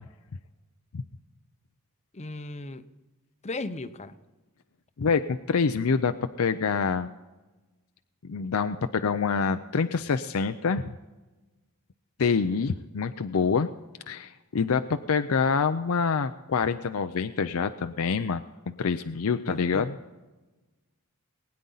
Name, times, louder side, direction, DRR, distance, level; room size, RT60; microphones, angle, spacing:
voice 1, 2.1-2.8 3.4-4.1 19.5-19.9, left 2 dB, 30° left, 11 dB, 0.7 m, -36 dB
voice 2, 5.0-7.1 8.2-10.9 12.2-13.7 14.1-18.4 18.8-19.9, left 5 dB, 65° left, 9 dB, 0.5 m, -26 dB
20.5 x 9.7 x 4.0 m, 1.2 s
head